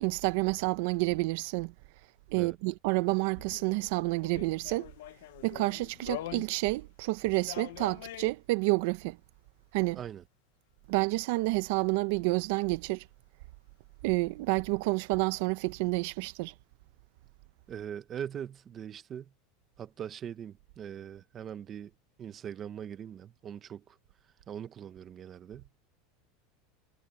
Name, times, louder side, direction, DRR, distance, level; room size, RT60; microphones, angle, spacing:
voice 1, 0.0-1.7 2.3-4.9 5.4-9.2 9.7-10.0 10.9-13.0 14.0-16.5, right 24 dB, 60° right, 0.9 m, -29 dB
sound 1, 3.4-6.8 7.2-8.4 11.9-12.0, left 16 dB, 75° left, 1.0 m, -44 dB
voice 2, 17.7-19.3 19.8-21.9 22.2-24.0 24.5-25.8, right 9 dB, 25° right, 1.2 m, -41 dB
supercardioid pair, 160°, 0 cm